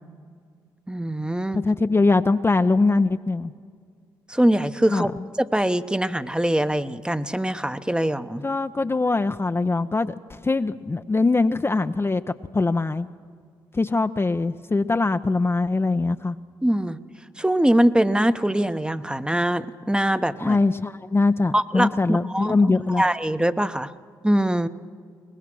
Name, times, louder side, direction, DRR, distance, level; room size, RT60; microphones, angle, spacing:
voice 1, 0.9-1.6 4.3-5.1 5.4-8.5 16.6-17.0 17.4-20.6 21.5-22.6 23.0-23.9 24.2-24.7, right 1 dB, 10° right, 11 dB, 0.9 m, -22 dB
voice 2, 1.5-3.5 4.9-5.1 8.4-12.2 12.5-13.1 13.7-16.4 20.4-23.0, left 3 dB, 25° left, 8 dB, 0.6 m, -22 dB
22.5 x 19.5 x 6.1 m, 2.1 s
hypercardioid pair, 45°, 10 cm